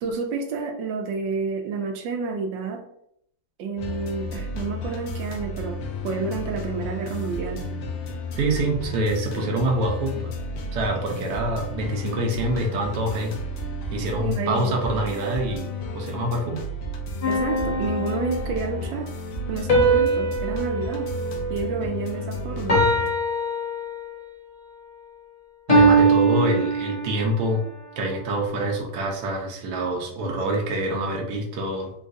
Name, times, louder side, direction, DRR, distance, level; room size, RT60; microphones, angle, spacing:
voice 1, 0.0-2.8 3.6-5.8 6.0-7.6 14.2-14.8 17.3-19.1 19.5-21.1 21.5-22.8, right 4 dB, 90° right, 3 dB, 1.3 m, -29 dB
sound 1, 3.8-23.1, left 1 dB, 70° left, 0.8 m, -32 dB
voice 2, 8.4-10.3 10.7-13.3 13.9-15.7 15.9-16.6 25.7-27.6 28.0-31.9, right 1 dB, 70° right, 1 dB, 1.2 m, -26 dB
sound 2, 17.2-18.7 19.7-22.2 22.7-24.3 25.7-27.4, right 2 dB, 45° left, 0.5 m, -22 dB
3.8 x 2.5 x 2.5 m, 0.71 s
omnidirectional pair, 1.9 m